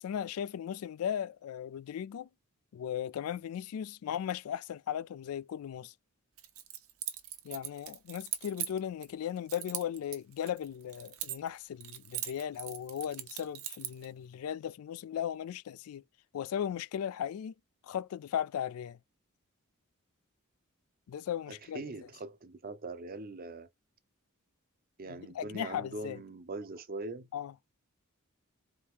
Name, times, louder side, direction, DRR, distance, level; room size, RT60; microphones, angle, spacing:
voice 1, 0.0-2.3 2.7-5.9 7.4-16.0 16.3-17.5 17.8-19.0 21.1-21.8 25.1-26.2 27.3-27.5, left 9 dB, 85° left, 0.3 m, -37 dB
Keys jangling, 6.4-9.1 9.5-11.6 11.8-14.1, right 12 dB, 75° right, 1.1 m, -40 dB
voice 2, 21.5-23.7 25.0-27.3, right 2 dB, 45° right, 0.7 m, -42 dB
4.6 x 2.8 x 3.5 m
head